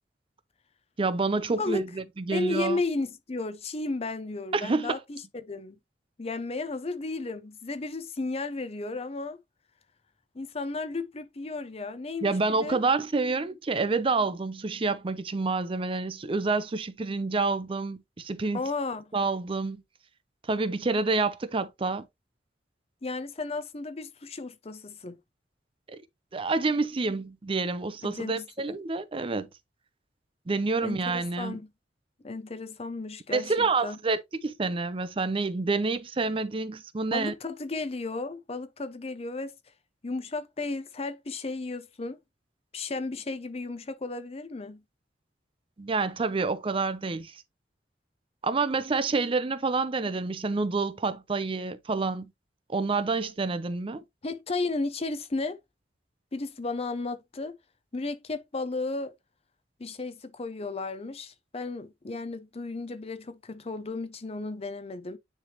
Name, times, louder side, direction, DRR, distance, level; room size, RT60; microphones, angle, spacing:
voice 1, 1.0-2.8 4.5-5.0 12.2-18.6 19.1-19.8 20.5-22.1 25.9-26.0 26.3-29.5 30.5-31.6 33.3-37.3 45.8-47.3 48.4-52.3 52.7-54.0, right 3 dB, 30° right, 0.5 m, -28 dB
voice 2, 1.5-1.8 2.3-5.8 6.2-9.4 10.3-12.8 18.5-19.1 23.0-25.2 28.0-28.5 30.8-31.7 32.2-34.0 37.1-39.5 40.0-42.2 42.7-44.8 54.2-55.6 56.3-57.5 57.9-59.1 59.8-65.2, left 3 dB, 35° left, 0.6 m, -34 dB
9.7 x 3.4 x 2.9 m
head